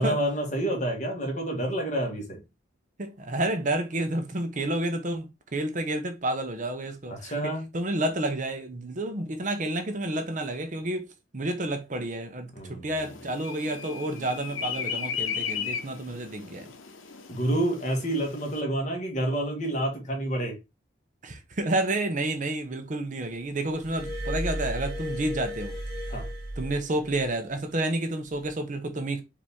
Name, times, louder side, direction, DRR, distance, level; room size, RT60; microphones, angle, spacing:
voice 1, 0.0-2.4 7.1-7.7 12.5-12.9 17.3-20.5 26.1-26.3, right 1 dB, 40° left, 1.5 m, -28 dB
voice 2, 3.0-11.1 11.3-16.7 21.2-25.8 26.6-29.2, right 1 dB, 40° right, 0.7 m, -30 dB
sound 1, 13.0-18.6, left 7 dB, 90° left, 0.8 m, -36 dB
Glass, 23.7-27.3 28.3-28.5, equal, 20° left, 1.5 m, -34 dB
5.2 x 2.7 x 3.5 m
head